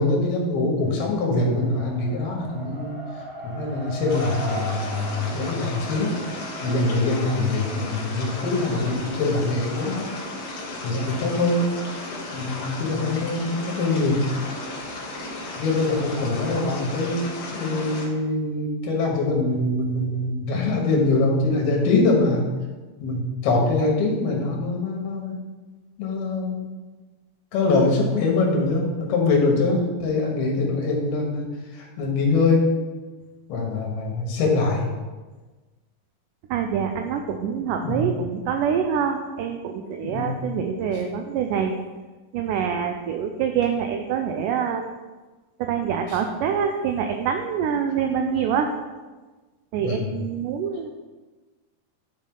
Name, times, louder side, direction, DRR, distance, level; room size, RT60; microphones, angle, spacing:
voice 1, 0.0-2.9 3.4-6.1 6.6-10.1 10.8-11.7 12.3-14.2 15.6-17.2 17.5-22.4 23.0-25.4 26.0-26.6 27.5-31.5 31.7-32.6 33.5-34.9 37.8-38.1 40.0-40.4 46.1-46.2 49.8-50.2, left 3 dB, 85° left, -1 dB, 3.4 m, -23 dB
Race car auto racing, 0.8-9.0, right 1 dB, 60° right, 1.0 m, -39 dB
sound 1, 4.1-18.1, left 2 dB, 60° left, 2.8 m, -34 dB
voice 2, 36.5-41.7 42.3-44.9 45.6-48.7 49.7-50.9, right 7 dB, 90° right, 5 dB, 1.8 m, -25 dB
11.0 x 5.2 x 3.8 m, 1.3 s
omnidirectional pair, 4.3 m